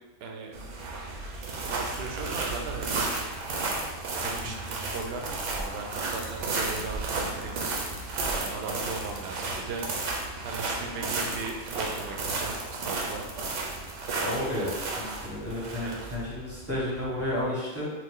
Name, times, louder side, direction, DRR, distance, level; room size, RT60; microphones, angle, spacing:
voice 1, 0.2-0.5 1.6-3.3 4.1-10.0 10.4-13.3 15.8-15.9, right 4 dB, 65° right, 2 dB, 0.7 m, -38 dB
sound 1, 0.5-17.4, right 3 dB, 85° right, 1.0 m, -33 dB
sound 2, 4.7-9.1, right 1 dB, 35° left, 0.6 m, -46 dB
voice 2, 14.2-17.9, left 1 dB, 15° right, -7 dB, 0.9 m, -32 dB
3.1 x 2.4 x 3.6 m, 1.2 s
omnidirectional pair, 1.2 m